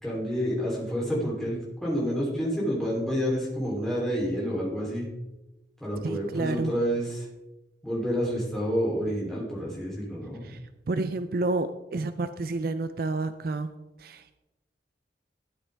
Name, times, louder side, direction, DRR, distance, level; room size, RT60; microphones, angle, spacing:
voice 1, 0.0-5.1 5.8-7.2 7.8-10.4, equal, ahead, -5 dB, 3.2 m, -29 dB
voice 2, 6.0-6.7 10.4-10.6 10.9-13.7 14.0-14.4, right 3 dB, 55° right, 11 dB, 0.4 m, -30 dB
12.5 x 9.4 x 3.4 m, 1.0 s
head